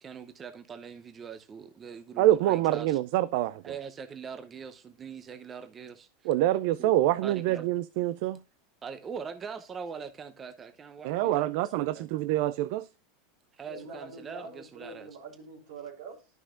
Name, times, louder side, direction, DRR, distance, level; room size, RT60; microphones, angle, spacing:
voice 1, 0.0-3.0 3.6-6.3 6.8-6.9 7.2-7.7 8.8-12.1 13.5-15.1, right 6 dB, 25° right, 0.7 m, -42 dB
voice 2, 2.2-3.6 6.3-8.4 11.0-12.9, right 14 dB, 65° right, 0.4 m, -26 dB
voice 3, 13.6-16.3, right 3 dB, 80° right, 3.3 m, -44 dB
11.0 x 6.2 x 2.5 m
supercardioid pair, 120°, 0 cm